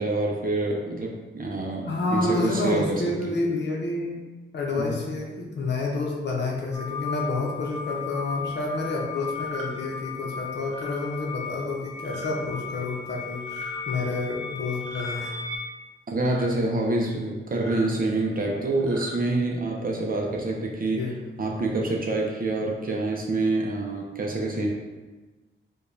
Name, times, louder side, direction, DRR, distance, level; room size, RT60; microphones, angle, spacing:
voice 1, 0.0-3.3 4.8-5.0 16.1-21.1 21.4-24.7, right 2 dB, 45° right, -1 dB, 0.5 m, -27 dB
voice 2, 1.9-4.2 4.5-15.3 20.9-21.2, left 2 dB, 55° left, -2 dB, 0.6 m, -29 dB
sound 1, 6.7-15.6, left 5 dB, 15° left, 0.7 m, -36 dB
sound 2, 9.3-9.7 10.6-11.0 12.0-12.3 13.4-13.7 14.8-15.2 16.2-16.5 17.5-17.9 18.7-19.1, equal, 75° right, 0.8 m, -40 dB
4.7 x 2.2 x 2.6 m, 1.2 s
wide cardioid pair, 110°, 21 cm